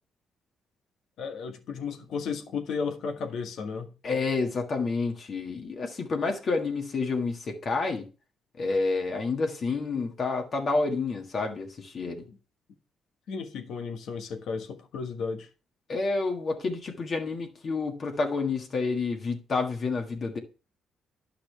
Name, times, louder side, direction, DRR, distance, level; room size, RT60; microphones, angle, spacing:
voice 1, 1.2-3.9 12.0-12.4 13.3-15.5, left 5 dB, 75° left, 1.3 m, -34 dB
voice 2, 4.0-8.1 8.6-12.2 15.9-20.4, left 3 dB, 50° left, 1.6 m, -29 dB
10.0 x 5.8 x 3.3 m
cardioid pair, 90°, 0 cm